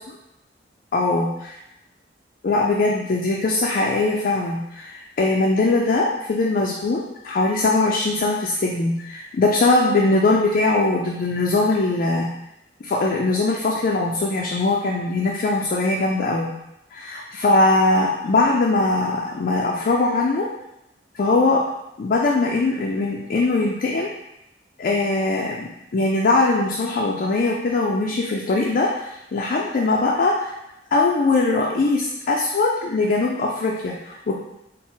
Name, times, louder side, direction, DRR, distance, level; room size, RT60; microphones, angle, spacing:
voice 1, 0.9-1.3 2.4-12.3 12.8-16.5 16.9-20.5 21.1-21.6 22.0-24.1 24.8-30.5 30.9-34.3, left 2 dB, 50° left, -2 dB, 0.4 m, -21 dB
4.0 x 2.1 x 3.8 m, 0.88 s
head